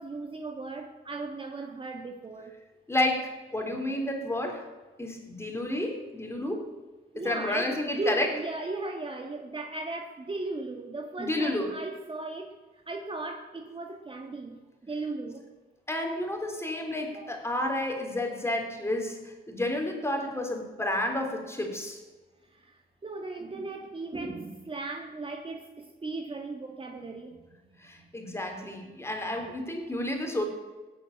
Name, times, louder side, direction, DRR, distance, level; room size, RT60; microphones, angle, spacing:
voice 1, 0.0-2.6 7.1-12.5 12.9-15.5 17.1-17.4 22.5-27.6 29.4-29.5, right 2 dB, 25° right, 4 dB, 1.6 m, -37 dB
voice 2, 2.9-4.6 5.0-6.7 7.2-8.3 11.2-11.8 15.9-22.0 27.8-30.4, left 1 dB, 15° left, 3 dB, 3.8 m, -31 dB
17.0 x 8.8 x 8.8 m, 1.3 s
cardioid pair, 90°, 20 cm